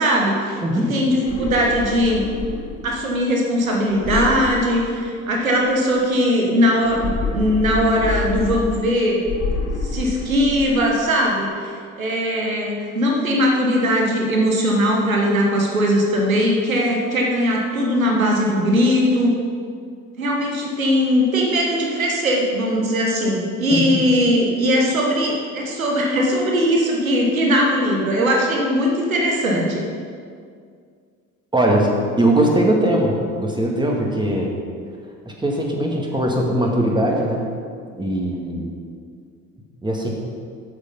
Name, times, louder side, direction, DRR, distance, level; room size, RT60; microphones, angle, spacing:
voice 1, 0.0-2.3 2.8-9.2 9.9-19.3 20.2-29.8, equal, 85° right, -1 dB, 1.2 m, -20 dB
voice 2, 0.6-0.9 23.7-24.0 31.5-34.5 35.3-37.4 37.9-38.7 39.8-40.1, right 1 dB, 10° right, -1 dB, 1.9 m, -20 dB
sound 1, 1.1-3.0 3.9-5.4 6.8-8.9 9.2-10.9, left 3 dB, 35° left, 1.5 m, -28 dB
8.3 x 7.5 x 5.4 m, 2.2 s
figure-of-eight pair, 55°, 40 cm